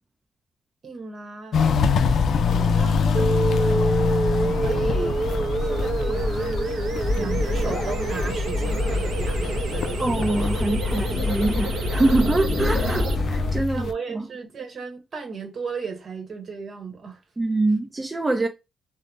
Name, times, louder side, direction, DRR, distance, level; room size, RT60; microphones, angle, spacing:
voice 1, 0.8-1.6 2.5-4.0 4.4-5.2 5.6-10.1 13.7-17.2, right 5 dB, 60° right, 0.9 m, -35 dB
Walk footsteps, 1.5-13.9, left 6 dB, 80° left, 0.3 m, -26 dB
sound 1, 1.7-13.6, left 2 dB, 50° left, 0.9 m, -28 dB
sound 2, 3.1-13.1, right 3 dB, 80° right, 0.5 m, -28 dB
voice 2, 10.0-14.2 17.4-18.5, right 2 dB, 25° right, 0.5 m, -24 dB
3.2 x 2.0 x 2.5 m
cardioid pair, 95°, 0 cm